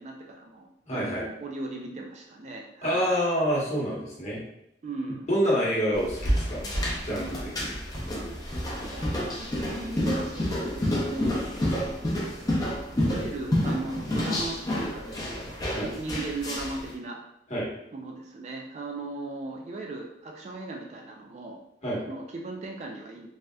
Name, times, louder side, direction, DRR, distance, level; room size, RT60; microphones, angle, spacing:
voice 1, 0.0-3.1 4.8-5.3 8.9-11.5 12.9-15.5 15.8-17.2 17.9-21.6 22.1-23.3, right 2 dB, 40° right, 1 dB, 0.3 m, -37 dB
voice 2, 0.9-1.2 2.8-4.4 5.3-6.7 7.0-7.8 15.7-15.9 17.5-17.7 21.8-22.0, equal, 40° left, -6 dB, 1.0 m, -27 dB
sound 1, 5.9-16.9, left 1 dB, 20° left, 0.5 m, -29 dB
3.3 x 2.6 x 2.2 m, 0.79 s
head